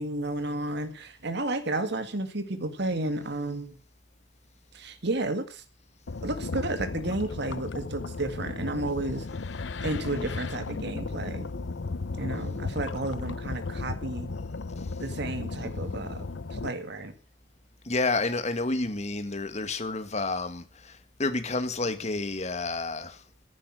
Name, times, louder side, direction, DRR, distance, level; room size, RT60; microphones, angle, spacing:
voice 1, 0.0-3.8 4.7-5.6 6.2-9.3 9.8-11.5 12.1-14.3 15.0-16.3 16.5-17.2, right 2 dB, 60° right, 2.0 m, -32 dB
sound 1, 6.1-16.7, left 3 dB, 70° left, 0.8 m, -35 dB
voice 2, 17.8-23.4, left 3 dB, 35° left, 1.7 m, -30 dB
15.0 x 10.5 x 6.2 m
head